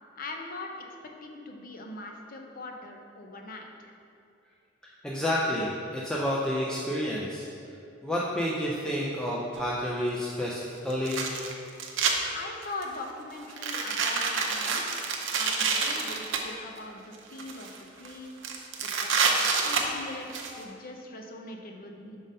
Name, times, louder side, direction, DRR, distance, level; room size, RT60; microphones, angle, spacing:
voice 1, 0.2-0.9 1.2-3.9 12.3-17.7 18.0-22.2, left 2 dB, 50° left, 2 dB, 0.6 m, -41 dB
voice 2, 5.0-7.5 8.0-11.2 20.5-20.6, equal, 5° left, -5 dB, 0.4 m, -30 dB
sound 1, 9.6-9.7 10.9-12.1 12.6-13.0 13.5-16.4 17.1-17.8 18.0-18.1 18.4-20.5, right 5 dB, 75° right, 0.6 m, -28 dB
5.2 x 3.9 x 5.3 m, 2.6 s
head